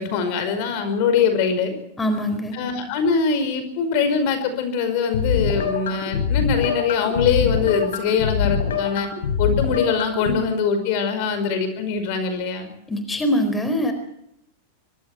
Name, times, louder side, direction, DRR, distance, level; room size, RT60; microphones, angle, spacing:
voice 1, 0.0-1.7 2.5-9.1 9.4-12.8, left 6 dB, 45° left, 9 dB, 5.3 m, -23 dB
voice 2, 2.0-2.5 12.9-13.9, equal, 10° left, 8 dB, 4.3 m, -23 dB
sound 1, 5.1-10.3, left 7 dB, 65° left, 5.3 m, -24 dB
24.5 x 24.5 x 4.6 m, 0.74 s
figure-of-eight pair, 90°, 0 cm